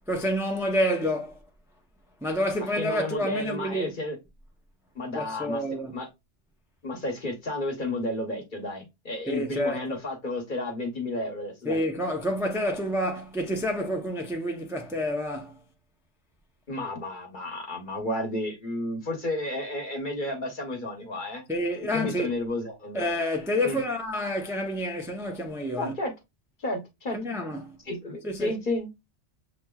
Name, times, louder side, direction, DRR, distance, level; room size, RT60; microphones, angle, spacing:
voice 1, 0.1-1.3 2.2-4.0 5.1-6.0 9.3-10.0 11.6-15.6 21.5-22.3 22.9-25.9 27.1-27.8 28.2-28.5, equal, 5° right, 0.4 m, -28 dB
voice 2, 2.6-4.2 4.9-5.6 5.9-6.1 6.8-11.8 16.7-21.5 21.9-23.1 23.6-23.8 25.8-26.1 26.6-27.4 27.8-28.9, left 1 dB, 45° left, 1.2 m, -32 dB
6.6 x 3.0 x 2.3 m
omnidirectional pair, 1.2 m